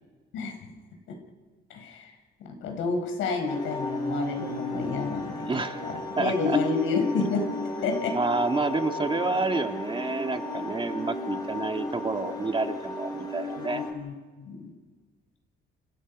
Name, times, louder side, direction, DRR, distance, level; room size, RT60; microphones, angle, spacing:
voice 1, 1.7-2.1 2.4-5.5 5.8-7.5 7.8-8.2 13.6-14.7, left 4 dB, 90° left, 5 dB, 5.0 m, -29 dB
sound 1, 3.5-13.9, left 1 dB, 20° left, 7.5 m, -34 dB
voice 2, 5.5-5.8 6.2-6.6 8.1-13.8, right 3 dB, 25° right, 5 dB, 2.0 m, -29 dB
29.5 x 25.5 x 5.4 m, 1.4 s
cardioid pair, 90°, 20 cm